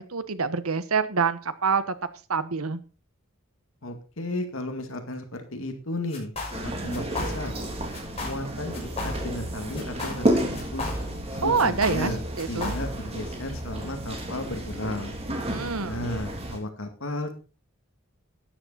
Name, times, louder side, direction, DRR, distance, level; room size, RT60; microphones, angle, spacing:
voice 1, 0.0-1.8 2.3-2.8 11.4-12.1 12.4-12.7 15.5-16.0, right 5 dB, 85° right, 13 dB, 1.2 m, -26 dB
voice 2, 3.8-7.6 8.2-10.9 11.3-12.2 12.5-15.1 15.8-17.4, left 1 dB, 65° left, 6 dB, 2.2 m, -34 dB
sound 1, 6.1-6.6 6.9-7.6 7.9-8.5 8.7-9.5 9.7-11.3 11.6-13.1, left 2 dB, 30° left, 6.8 m, -34 dB
sound 2, 6.5-16.6, right 1 dB, 30° right, 2.9 m, -32 dB
13.0 x 9.9 x 4.2 m, 0.34 s
head